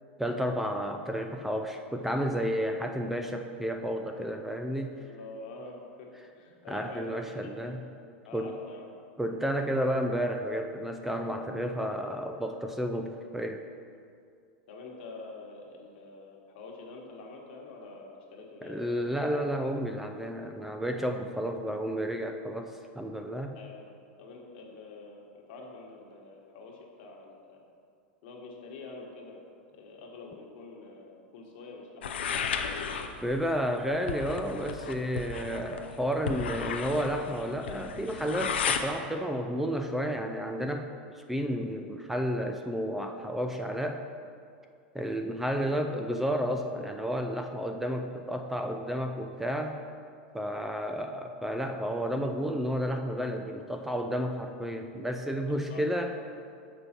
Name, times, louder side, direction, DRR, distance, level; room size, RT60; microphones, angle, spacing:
voice 1, 0.2-5.0 6.7-7.8 8.3-8.6 9.2-13.6 18.6-23.6 33.2-40.9 41.3-44.0 44.9-49.8 50.3-56.1, equal, 5° right, 4 dB, 0.4 m, -31 dB
voice 2, 4.9-6.1 6.3-7.8 8.2-8.9 14.7-19.1 23.5-27.6 28.2-29.4 29.7-32.2 55.5-56.3, left 3 dB, 65° left, 0 dB, 1.3 m, -46 dB
sound 1, 32.0-38.8, left 6 dB, 90° left, 0.5 m, -34 dB
6.7 x 5.3 x 4.3 m, 2.3 s
hypercardioid pair, 110°, 6 cm